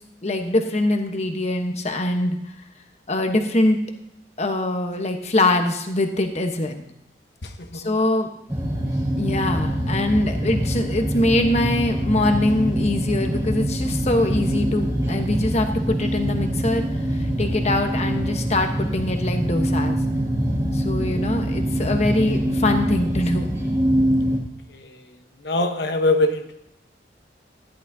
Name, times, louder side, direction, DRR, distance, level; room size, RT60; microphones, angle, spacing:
voice 1, 0.2-2.4 3.1-3.8 4.4-6.8 7.7-8.3 9.2-16.8 17.1-20.0 20.7-23.5, left 1 dB, 40° left, 5 dB, 1.1 m, -23 dB
voice 2, 7.4-8.0 24.7-25.2 25.4-26.5, left 2 dB, 65° left, 6 dB, 1.1 m, -24 dB
sound 1, 8.5-24.4, equal, 20° right, 2.2 m, -24 dB
14.5 x 11.0 x 2.8 m, 0.80 s
head